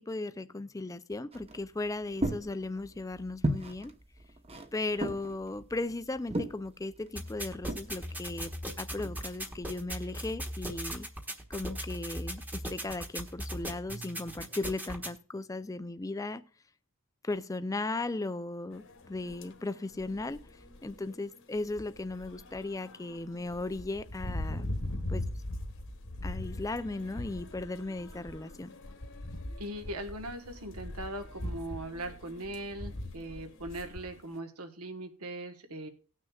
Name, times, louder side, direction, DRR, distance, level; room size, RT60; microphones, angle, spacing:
voice 1, 0.0-3.9 4.7-8.5 8.8-11.1 11.5-16.4 17.2-20.4 20.8-24.7 25.1-25.3 26.2-28.7, left 2 dB, 15° left, 0.4 m, -36 dB
sound 1, 1.3-9.7, right 1 dB, 25° right, 0.9 m, -37 dB
sound 2, 7.1-15.1, equal, 10° right, 1.1 m, -39 dB
sound 3, 18.7-34.3, left 1 dB, 60° left, 1.2 m, -41 dB
voice 2, 29.6-35.9, right 1 dB, 75° right, 1.4 m, -40 dB
18.5 x 6.3 x 2.3 m
head